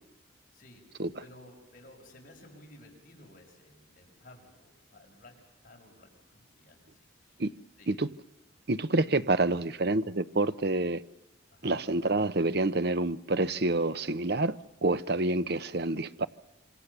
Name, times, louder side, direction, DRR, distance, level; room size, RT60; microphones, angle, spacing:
voice 1, 0.5-5.4 5.6-7.4 7.8-8.0 11.5-11.8, left 1 dB, 45° left, 5.7 m, -55 dB
voice 2, 8.7-11.0 11.6-16.3, right 2 dB, 55° right, 0.8 m, -28 dB
27.0 x 25.0 x 6.9 m
head